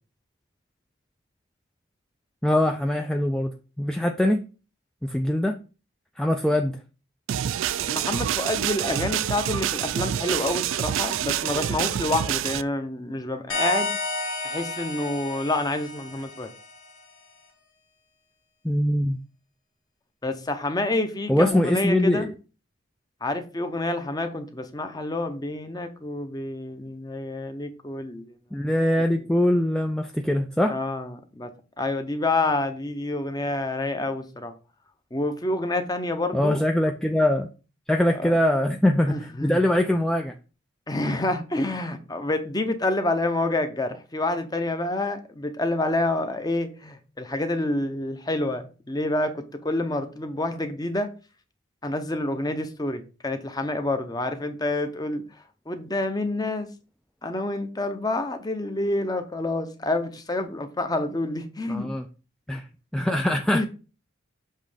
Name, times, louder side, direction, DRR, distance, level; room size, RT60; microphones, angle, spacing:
voice 1, 2.4-4.4 5.0-5.6 6.2-6.8 18.6-19.2 21.3-22.3 28.5-30.7 36.3-37.5 37.9-40.3 61.7-62.0 62.5-62.7 62.9-63.7, left 1 dB, 5° left, 0.3 m, -22 dB
sound 1, 7.3-12.6, right 10 dB, 75° right, 0.3 m, -27 dB
voice 2, 7.8-13.9 14.4-16.5 20.2-22.3 23.2-28.4 30.7-34.5 35.1-36.6 38.2-38.3 39.1-39.6 40.9-51.1 51.8-55.2 55.7-56.7 57.2-61.9 63.5-63.7, left 2 dB, 20° left, 0.7 m, -28 dB
sound 2, 13.5-16.9, left 2 dB, 80° left, 1.7 m, -31 dB
7.4 x 3.2 x 5.0 m
head